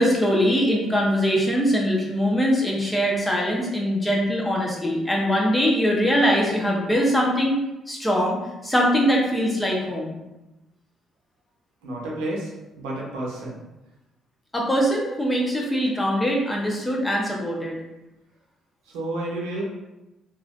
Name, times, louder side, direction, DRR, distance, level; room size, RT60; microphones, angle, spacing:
voice 1, 0.0-7.6 7.9-8.4 8.6-10.2 14.5-17.8, equal, 15° left, -2 dB, 0.9 m, -22 dB
voice 2, 11.8-13.6 18.9-19.6, right 1 dB, 90° right, -3 dB, 0.8 m, -31 dB
2.9 x 2.5 x 2.5 m, 0.97 s
supercardioid pair, 60°, 0 cm